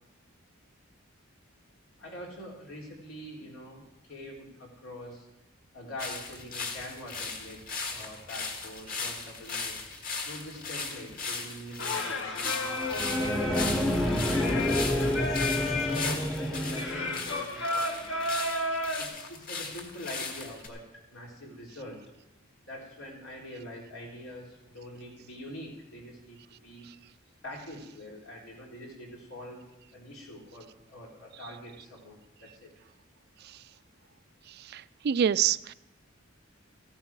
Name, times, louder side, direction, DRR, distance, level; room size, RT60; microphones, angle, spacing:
voice 1, 2.0-3.8 4.1-5.3 5.7-9.8 10.3-13.0 13.5-18.3 19.0-22.0 22.6-26.9 27.4-29.7 29.9-32.7, left 1 dB, 85° left, -2 dB, 3.8 m, -44 dB
sound 1, 6.0-20.7, left 4 dB, 45° left, 1.8 m, -37 dB
Singing, 11.8-19.0, left 2 dB, 65° left, 1.7 m, -33 dB
sound 2, 12.7-17.3, left 1 dB, 5° left, 0.7 m, -29 dB
voice 2, 34.7-35.7, right 8 dB, 50° right, 17 dB, 0.3 m, -26 dB
14.5 x 11.0 x 4.8 m, 0.94 s
head